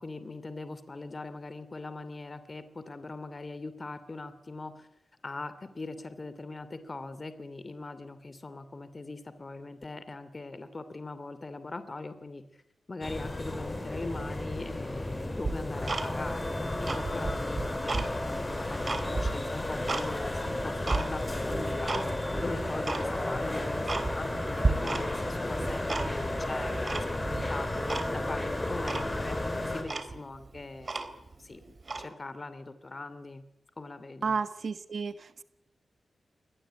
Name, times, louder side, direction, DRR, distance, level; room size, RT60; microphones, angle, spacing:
voice 1, 0.0-4.9 5.2-12.4 12.9-27.7 28.1-31.1 31.4-33.4 33.8-34.3, left 3 dB, 35° left, 12 dB, 2.7 m, -41 dB
sound 1, 13.0-29.8, left 1 dB, 20° left, 5.6 m, -33 dB
Tick-tock, 15.4-16.4 16.8-18.1 18.5-20.1 20.5-21.1 21.5-22.1 22.3-22.4 22.8-23.1 23.5-23.6 23.9-24.4 24.6-25.3 25.5-26.3 26.9-27.4 27.9-28.1 28.4-28.5 28.9-29.1 29.6-29.7 29.8-31.3 31.8-32.1, right 3 dB, 40° right, 3.7 m, -32 dB
voice 2, 34.2-35.4, right 5 dB, 65° right, 12 dB, 1.3 m, -32 dB
24.0 x 19.0 x 8.9 m, 0.82 s
wide cardioid pair, 95°, 0 cm